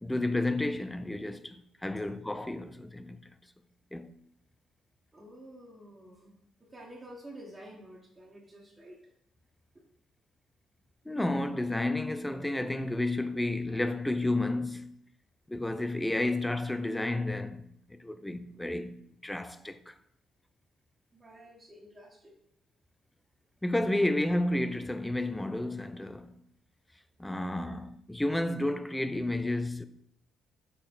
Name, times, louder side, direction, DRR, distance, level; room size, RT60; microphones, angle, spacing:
voice 1, 0.0-3.2 3.9-4.1 11.1-14.9 15.5-17.6 17.9-19.9 23.6-26.4 27.2-29.8, left 1 dB, 10° left, 0.6 m, -31 dB
voice 2, 5.1-9.0 21.1-22.3 27.6-27.8, right 1 dB, 25° right, 1.7 m, -50 dB
6.5 x 3.9 x 4.6 m
hypercardioid pair, 50°, 0 cm